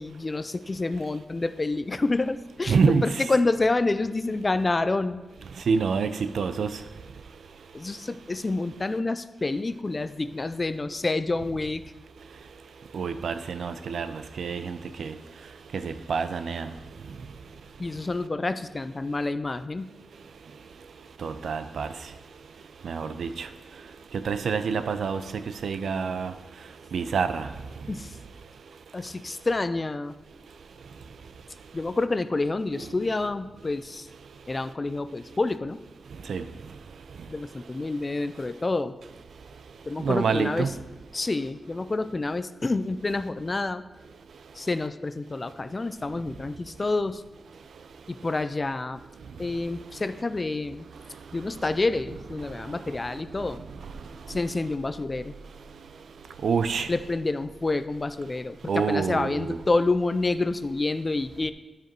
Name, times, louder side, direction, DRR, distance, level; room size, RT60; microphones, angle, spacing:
voice 1, 0.0-5.2 7.7-11.8 17.8-19.9 27.9-28.1 28.9-30.1 31.7-34.1 34.5-35.8 37.3-38.9 39.9-40.7 41.1-43.8 44.6-47.2 48.1-49.0 49.4-50.9 51.3-53.6 54.3-55.3 56.9-61.5, left 3 dB, 25° left, 0.3 m, -28 dB
voice 2, 2.7-3.1 5.7-6.7 12.9-14.1 14.4-15.1 15.7-16.7 21.2-21.9 22.8-23.5 24.2-25.2 25.6-26.3 26.9-27.5 36.3-36.4 40.0-40.7 56.4-56.9 58.7-59.6, right 5 dB, 75° right, 0.5 m, -26 dB
12.0 x 5.0 x 4.6 m
wide cardioid pair, 150°, 0 cm